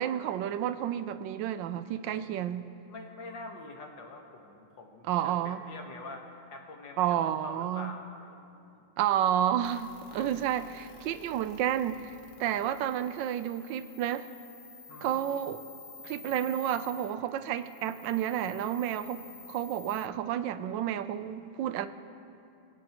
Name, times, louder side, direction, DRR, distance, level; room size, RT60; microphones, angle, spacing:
voice 1, 0.0-2.7 5.1-5.6 7.0-7.9 9.0-12.1 12.4-14.3 15.0-15.6 16.0-21.9, right 10 dB, 80° right, 12 dB, 1.3 m, -30 dB
voice 2, 2.9-8.8 10.1-10.4 14.9-15.2, left 3 dB, 80° left, 2 dB, 2.1 m, -46 dB
sound 1, 9.6-20.1, left 5 dB, 55° left, 1.5 m, -51 dB
22.5 x 16.0 x 3.0 m, 2.6 s
omnidirectional pair, 2.0 m